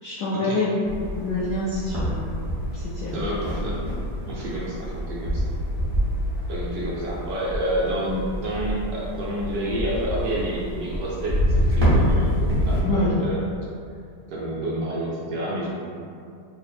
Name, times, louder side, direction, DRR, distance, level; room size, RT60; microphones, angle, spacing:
voice 1, 0.0-2.2 2.7-3.3 12.8-13.1, left 2 dB, 80° left, -8 dB, 0.8 m, -26 dB
sound 1, 0.8-12.8, equal, 25° right, 0.6 m, -26 dB
voice 2, 3.1-3.8 4.3-5.4 6.5-13.5 14.3-15.7, right 1 dB, 70° right, -5 dB, 1.1 m, -29 dB
3.5 x 2.0 x 4.1 m, 2.4 s
omnidirectional pair, 2.3 m